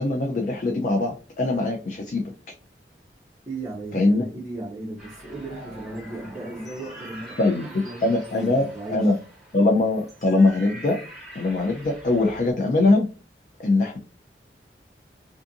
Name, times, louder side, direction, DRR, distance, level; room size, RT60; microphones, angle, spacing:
voice 1, 0.0-2.3 3.9-4.2 7.4-9.1 9.5-11.0 11.3-13.1 13.6-14.0, left 2 dB, 45° left, 0.4 m, -22 dB
voice 2, 3.5-8.1 8.3-9.2, right 2 dB, 20° right, 0.5 m, -35 dB
sound 1, 5.0-12.5, right 1 dB, ahead, 0.9 m, -44 dB
2.5 x 2.4 x 2.6 m
head